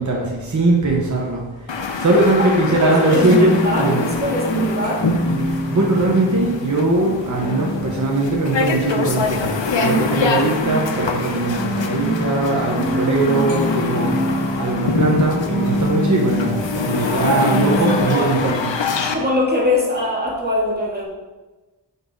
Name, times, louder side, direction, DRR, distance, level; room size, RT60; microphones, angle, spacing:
voice 1, 0.0-1.4 2.0-4.1 5.7-18.6, right 2 dB, 40° right, -2 dB, 0.9 m, -20 dB
sound 1, 0.8-18.0, right 1 dB, 45° left, 2.0 m, -26 dB
sound 2, 1.7-19.1, left 4 dB, 85° left, 0.6 m, -25 dB
voice 2, 2.4-3.9 4.2-5.1 17.1-18.3 19.0-21.1, left 1 dB, 20° right, -4 dB, 1.9 m, -23 dB
5.6 x 5.4 x 3.7 m, 1.2 s
wide cardioid pair, 50°, 43 cm